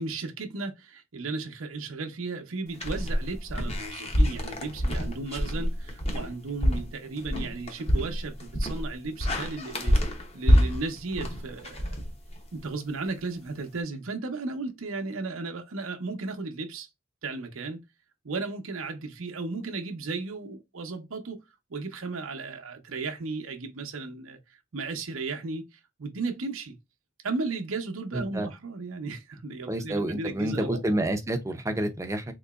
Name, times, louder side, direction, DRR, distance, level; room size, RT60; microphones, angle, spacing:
voice 1, 0.0-11.9 12.5-16.9 17.2-17.8 18.2-21.4 21.7-26.7 27.2-30.8, right 3 dB, 85° right, 0.7 m, -35 dB
sound 1, 2.7-12.6, equal, 30° left, 0.7 m, -27 dB
voice 2, 28.1-28.5 29.7-32.2, right 1 dB, 15° right, 0.5 m, -28 dB
3.8 x 2.9 x 2.3 m
head